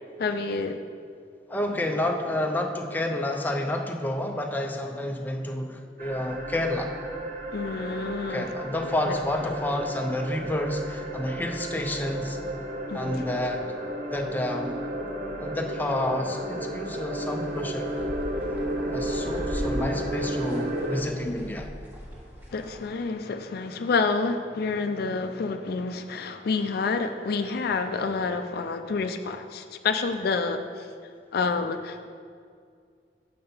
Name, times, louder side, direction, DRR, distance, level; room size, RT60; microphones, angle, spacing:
voice 1, 0.2-0.8 7.5-9.2 12.9-13.3 22.5-30.9 31.3-32.1, left 4 dB, 60° left, 8 dB, 0.4 m, -29 dB
voice 2, 1.5-6.9 8.3-12.4 12.9-13.7 14.1-14.8 15.4-17.9 18.9-21.7, left 1 dB, 10° left, 2 dB, 0.6 m, -29 dB
sound 1, 6.0-21.0, right 1 dB, 50° right, 0.8 m, -33 dB
sound 2, 17.4-22.9, equal, 10° right, 1.3 m, -39 dB
6.8 x 5.6 x 5.5 m, 2.2 s
head